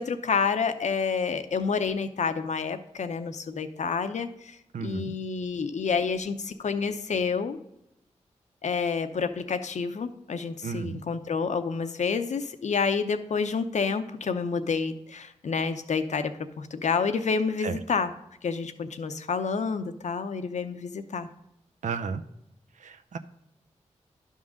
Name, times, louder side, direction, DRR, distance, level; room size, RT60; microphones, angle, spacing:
voice 1, 0.0-4.6 4.8-7.6 8.6-18.1 18.4-21.3, left 5 dB, 70° left, 10 dB, 0.6 m, -29 dB
voice 2, 4.7-5.1 10.6-11.0 17.6-17.8 21.8-22.2 22.8-23.2, right 5 dB, 80° right, 9 dB, 0.5 m, -33 dB
11.0 x 3.7 x 6.3 m, 0.83 s
cardioid pair, 45°, 13 cm